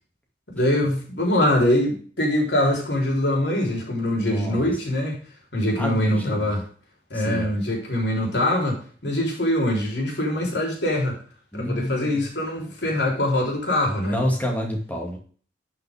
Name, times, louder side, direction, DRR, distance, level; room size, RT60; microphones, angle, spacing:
voice 1, 0.5-5.2 5.5-6.6 7.1-8.8 9.0-11.2 11.5-14.2, left 1 dB, 75° left, -1 dB, 4.0 m, -23 dB
voice 2, 4.1-4.7 5.8-6.5 7.1-7.5 11.5-12.2 14.1-15.2, equal, 10° left, 0 dB, 2.4 m, -28 dB
12.0 x 5.8 x 3.7 m, 0.42 s
head